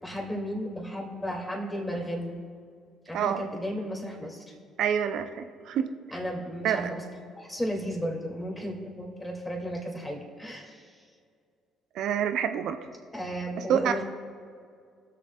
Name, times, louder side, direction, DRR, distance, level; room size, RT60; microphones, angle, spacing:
voice 1, 0.0-2.4 3.1-4.5 6.1-7.0 7.4-11.0 13.1-14.0, equal, 15° left, -1 dB, 2.5 m, -34 dB
voice 2, 4.8-5.9 6.6-6.8 11.9-12.8 13.7-14.0, right 8 dB, 65° right, 9 dB, 0.6 m, -27 dB
18.0 x 6.8 x 2.4 m, 2.2 s
hypercardioid pair, 60°, 0 cm